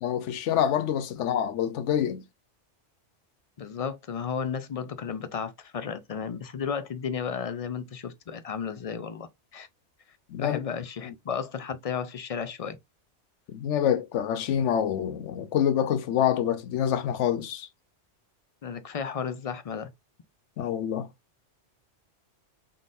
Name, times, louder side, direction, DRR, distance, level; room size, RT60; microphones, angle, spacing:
voice 1, 0.0-2.2 10.3-10.6 11.0-11.1 13.5-17.7 20.6-21.1, left 9 dB, 90° left, 0.9 m, -26 dB
voice 2, 3.6-9.7 10.4-12.8 18.6-19.9, left 6 dB, 55° left, 0.4 m, -33 dB
3.8 x 3.7 x 2.5 m
omnidirectional pair, 1.2 m